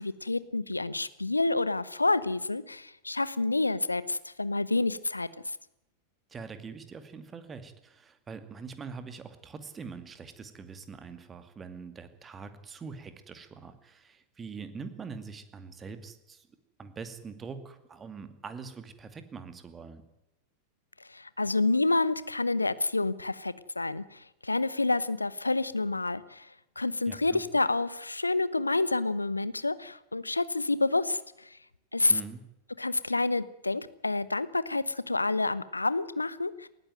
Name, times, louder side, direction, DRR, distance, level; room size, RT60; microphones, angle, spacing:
voice 1, 0.0-5.3 21.1-26.4 26.8-31.2 31.9-32.1 32.8-36.7, left 2 dB, 80° left, 17 dB, 0.9 m, -28 dB
voice 2, 6.3-16.5 16.8-20.0 27.1-27.4 32.1-32.5, right 5 dB, 20° right, 10 dB, 2.4 m, -43 dB
19.5 x 14.5 x 9.2 m, 0.89 s
figure-of-eight pair, 90°, 0 cm